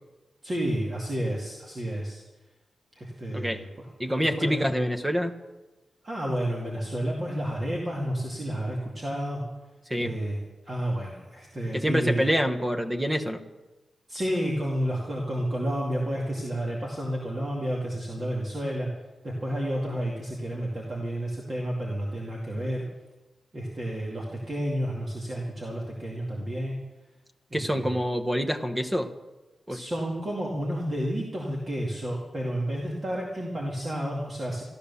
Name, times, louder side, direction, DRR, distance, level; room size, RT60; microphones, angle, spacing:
voice 1, 0.4-2.2 2.9-3.9 4.2-4.6 6.0-9.4 10.0-10.4 10.6-12.2 14.1-18.9 19.2-22.9 23.5-26.8 27.5-28.0 29.7-34.6, equal, 30° right, -3 dB, 2.2 m, -31 dB
voice 2, 4.0-5.3 9.9-10.1 11.7-13.4 27.5-29.1 29.7-29.8, equal, 10° right, 5 dB, 1.1 m, -26 dB
13.5 x 13.5 x 7.0 m, 1.1 s
wide cardioid pair, 175°, 0 cm